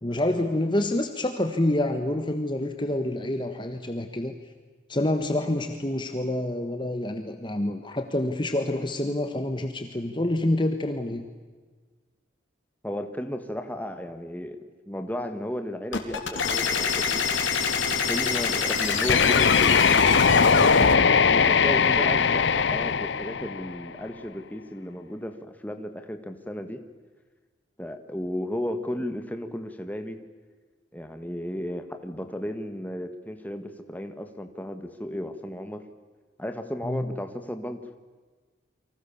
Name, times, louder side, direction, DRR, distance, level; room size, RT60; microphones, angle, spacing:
voice 1, 0.0-4.3 4.9-11.3 36.8-37.2, left 1 dB, 25° left, 6 dB, 1.4 m, -27 dB
voice 2, 12.8-14.6 14.9-17.3 17.9-20.8 21.1-26.8 27.8-30.2 30.9-35.8 36.4-37.8, equal, 10° left, 7 dB, 1.8 m, -34 dB
sound 1, 15.9-21.0, left 5 dB, 90° left, 3.3 m, -25 dB
sound 2, 19.1-24.0, left 6 dB, 70° left, 0.7 m, -20 dB
29.5 x 24.5 x 7.3 m, 1.4 s
head